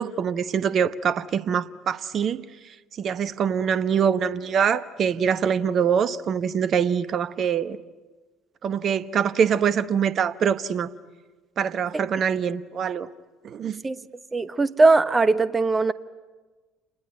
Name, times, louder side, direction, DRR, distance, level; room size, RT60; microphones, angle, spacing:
voice 1, 0.0-2.4 3.0-7.8 8.6-10.9 11.6-13.1 13.4-13.8, right 7 dB, 45° right, 0.9 m, -24 dB
voice 2, 14.3-15.9, right 3 dB, 25° right, 1.1 m, -19 dB
28.5 x 20.5 x 9.3 m
figure-of-eight pair, 55°, 0 cm